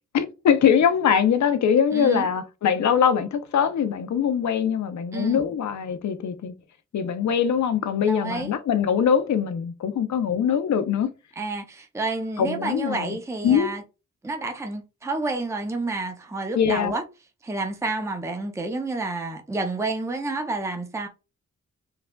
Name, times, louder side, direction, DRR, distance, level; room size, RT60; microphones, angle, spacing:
voice 1, 0.1-6.5 6.9-11.1 12.4-13.2 13.4-13.7 16.5-16.9, left 7 dB, 65° left, 0.6 m, -22 dB
voice 2, 1.9-2.2 5.1-5.4 8.0-8.5 11.4-13.8 14.2-17.0 17.4-21.1, right 2 dB, 10° right, 0.6 m, -29 dB
4.7 x 2.3 x 2.2 m
cardioid pair, 75°, 31 cm